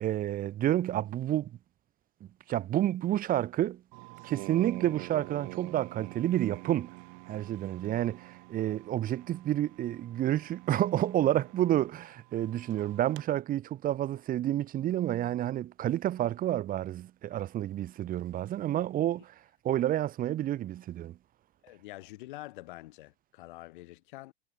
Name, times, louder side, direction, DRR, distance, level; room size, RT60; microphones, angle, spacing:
voice 1, 0.0-1.5 2.5-3.8 4.2-6.9 7.3-19.3 19.6-21.2, right 12 dB, 30° right, 1.3 m, -29 dB
sound 1, 3.9-13.2, right 35 dB, 50° right, 2.2 m, -47 dB
voice 2, 21.6-24.3, left 18 dB, 55° left, 7.0 m, -46 dB
figure-of-eight pair, 85°, 30 cm